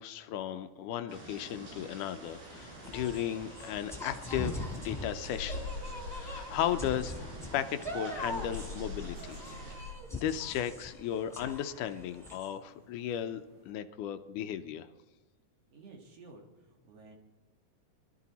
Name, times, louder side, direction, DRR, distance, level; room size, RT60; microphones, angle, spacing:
voice 1, 0.0-5.7 6.1-9.4 9.8-13.4 13.7-14.9, left 10 dB, 80° left, 10 dB, 2.1 m, -35 dB
sound 1, 1.1-9.8, right 2 dB, 70° right, 5.7 m, -49 dB
sound 2, 2.2-12.4, left 1 dB, ahead, 2.3 m, -42 dB
sound 3, 2.3-13.7, left 3 dB, 90° right, 6.8 m, -46 dB
voice 2, 15.7-17.1, right 3 dB, 55° right, 1 dB, 2.8 m, -53 dB
24.5 x 13.0 x 4.1 m, 1.2 s
omnidirectional pair, 3.7 m